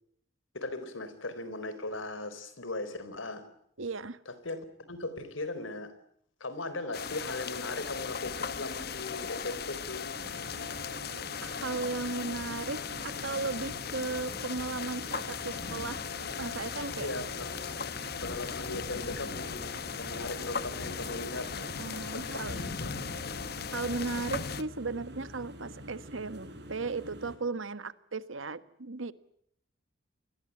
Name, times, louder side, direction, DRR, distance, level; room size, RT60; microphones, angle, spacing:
voice 1, 0.5-3.5 4.3-5.9 6.4-10.2 17.0-21.7 22.0-23.0, left 2 dB, 90° left, 13 dB, 4.2 m, -39 dB
voice 2, 3.8-4.2 11.4-16.0 16.4-17.1 21.8-22.5 23.7-29.1, right 3 dB, 90° right, 14 dB, 1.5 m, -36 dB
sound 1, 6.9-24.6, left 6 dB, 50° left, 1.1 m, -37 dB
sound 2, 10.1-27.4, equal, 55° right, 6.0 m, -47 dB
28.5 x 21.5 x 8.4 m, 0.69 s
head